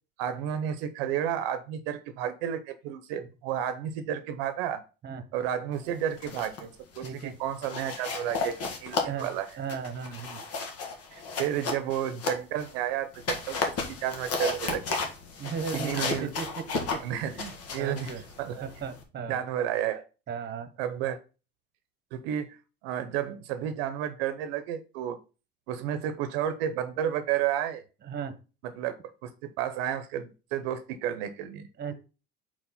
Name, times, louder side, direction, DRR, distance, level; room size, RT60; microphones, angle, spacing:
voice 1, 0.2-4.8 5.3-6.7 6.9-8.6 8.8-9.5 11.1-13.6 13.9-15.0 15.7-16.3 17.0-17.4 17.7-18.1 18.4-18.6 19.2-20.0 20.8-21.2 22.1-22.6 22.8-25.2 25.7-27.8 28.8-31.7, right 10 dB, 80° right, 11 dB, 0.7 m, -31 dB
sound 1, 6.0-6.6 6.9-7.2 7.6-12.7 13.1-19.0, left 4 dB, 55° left, 1.7 m, -34 dB
voice 2, 7.0-7.3 9.0-10.4 15.4-16.6 16.9-17.0 17.4-18.2 18.6-19.4 20.3-20.7 28.0-28.3 31.8-31.9, right 6 dB, 35° right, 11 dB, 1.2 m, -36 dB
4.6 x 4.5 x 5.6 m, 0.33 s
supercardioid pair, 90°, 29 cm